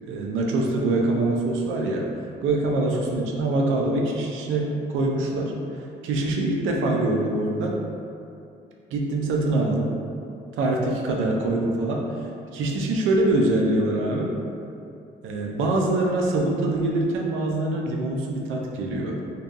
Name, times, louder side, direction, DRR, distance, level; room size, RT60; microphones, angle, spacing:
voice 1, 0.1-2.0 2.4-5.5 6.0-7.8 8.9-9.9 10.6-12.0 12.5-14.3 15.2-19.2, right 2 dB, 85° right, 0 dB, 0.4 m, -24 dB
2.6 x 2.3 x 2.4 m, 2.5 s
cardioid pair, 90°, 20 cm